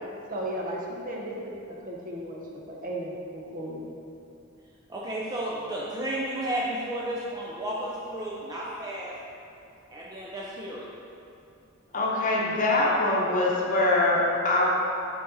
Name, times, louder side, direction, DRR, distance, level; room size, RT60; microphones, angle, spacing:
voice 1, 0.3-3.9, right 1 dB, 40° right, -2 dB, 0.9 m, -35 dB
voice 2, 4.9-9.2 9.9-10.8, right 1 dB, 20° right, -5 dB, 0.5 m, -32 dB
voice 3, 11.9-14.7, left 2 dB, 40° left, -3 dB, 0.9 m, -23 dB
6.1 x 4.2 x 4.0 m, 2.6 s
head